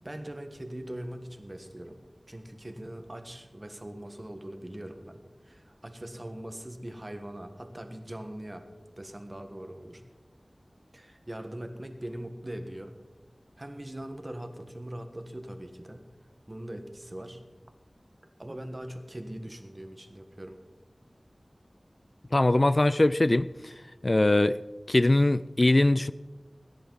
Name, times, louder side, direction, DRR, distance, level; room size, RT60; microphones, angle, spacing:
voice 1, 0.0-2.0 2.3-8.7 9.0-10.0 10.9-12.9 13.6-16.0 16.5-17.4 18.4-20.6, right 1 dB, 30° right, 1.4 m, -41 dB
voice 2, 22.3-23.7 24.0-24.6 24.9-26.1, left 2 dB, 45° left, 0.3 m, -22 dB
18.5 x 10.0 x 4.0 m
wide cardioid pair, 55°, 0 cm